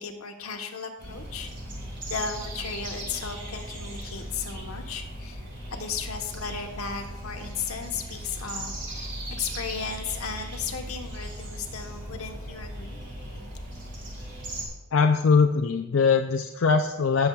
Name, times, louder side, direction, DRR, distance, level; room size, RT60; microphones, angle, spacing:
voice 1, 0.0-1.5 2.0-5.4 5.7-13.0, left 5 dB, 85° left, 4 dB, 1.1 m, -35 dB
sound 1, 1.0-14.7, right 1 dB, 55° right, 3.0 m, -38 dB
voice 2, 14.9-17.3, left 5 dB, 65° left, 4 dB, 0.4 m, -21 dB
17.5 x 7.0 x 2.3 m, 1.1 s
head